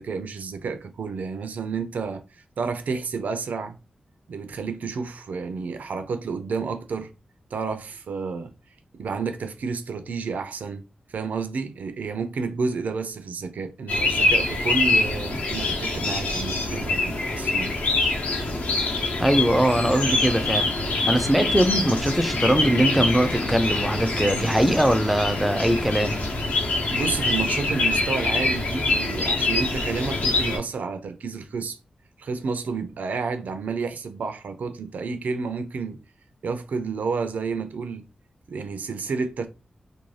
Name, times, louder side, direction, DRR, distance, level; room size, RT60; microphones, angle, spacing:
voice 1, 0.0-3.8 4.3-7.1 7.5-8.5 8.9-17.8 26.9-31.8 32.2-36.0 36.4-38.1 38.5-39.5, right 5 dB, 85° right, 0.4 m, -30 dB
sound 1, 13.9-30.6, left 2 dB, 70° left, 0.7 m, -25 dB
voice 2, 19.2-20.7 21.1-26.2, right 1 dB, ahead, 0.3 m, -21 dB
2.5 x 2.2 x 3.1 m
wide cardioid pair, 175°, 3 cm